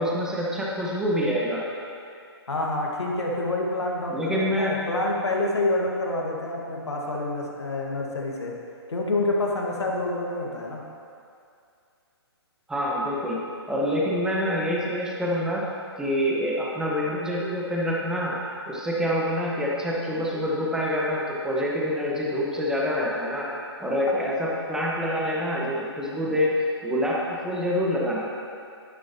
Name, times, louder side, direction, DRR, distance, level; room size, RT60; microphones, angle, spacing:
voice 1, 0.0-1.6 4.1-4.7 12.7-13.4 13.7-15.6 16.0-18.4 18.7-23.5 23.8-26.5 26.8-28.3, equal, 5° right, -5 dB, 1.4 m, -26 dB
voice 2, 2.5-8.5 8.9-10.8, left 2 dB, 85° left, -2 dB, 1.9 m, -27 dB
12.0 x 10.5 x 3.0 m, 2.5 s
hypercardioid pair, 135°, 14 cm